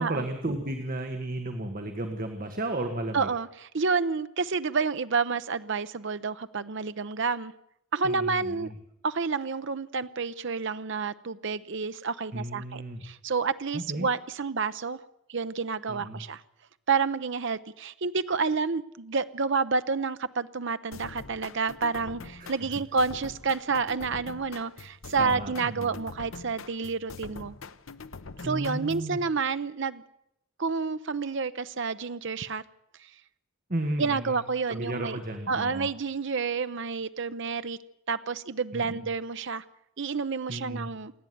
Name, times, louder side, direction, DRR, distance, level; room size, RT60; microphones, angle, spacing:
voice 1, 0.0-3.3 8.0-8.7 12.3-13.0 13.7-14.1 15.9-16.2 22.4-22.5 25.2-25.9 28.4-29.2 33.7-34.4 34.7-35.9 38.7-39.1 40.5-40.9, right 1 dB, 40° right, 5 dB, 1.7 m, -33 dB
voice 2, 3.1-7.5 7.9-8.7 9.0-15.0 15.3-16.4 16.9-27.5 28.4-30.0 30.6-32.6 33.0-33.1 34.0-35.2 35.5-37.8 38.1-39.6 40.0-41.1, right 4 dB, 55° right, 12 dB, 0.7 m, -29 dB
sound 1, 20.9-29.1, left 4 dB, 65° left, 0.9 m, -44 dB
28.0 x 10.5 x 9.3 m, 0.79 s
head